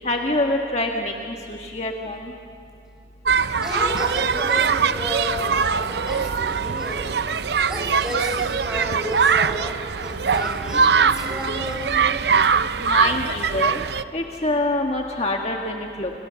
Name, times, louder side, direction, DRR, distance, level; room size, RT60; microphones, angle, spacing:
voice 1, 0.0-2.3 12.8-13.8 14.1-16.1, left 2 dB, 35° left, 1 dB, 1.5 m, -25 dB
sound 1, 3.2-14.0, right 6 dB, 70° right, 0.6 m, -22 dB
voice 2, 3.6-7.4 7.7-12.1, equal, 5° right, -1 dB, 6.1 m, -32 dB
29.5 x 29.0 x 6.9 m, 2.6 s
head